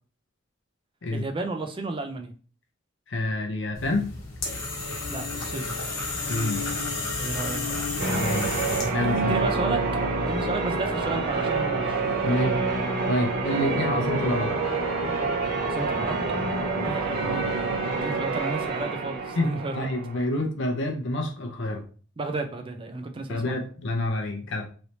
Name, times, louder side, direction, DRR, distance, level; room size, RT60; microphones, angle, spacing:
voice 1, 1.1-2.3 5.1-5.7 7.2-7.9 9.2-9.8 10.2-12.4 15.6-16.2 16.8-19.9 22.2-23.6, right 2 dB, 25° right, 5 dB, 0.5 m, -33 dB
voice 2, 3.1-4.1 6.3-6.6 8.1-8.5 8.9-9.3 12.2-12.6 13.1-14.5 19.4-21.8 23.3-24.7, left 1 dB, 60° left, 4 dB, 0.6 m, -27 dB
sound 1, 3.7-9.1, left 3 dB, 85° left, 1.0 m, -31 dB
Church bell, 8.0-20.3, right 3 dB, 55° right, 0.9 m, -27 dB
3.2 x 2.7 x 2.9 m, 0.39 s
head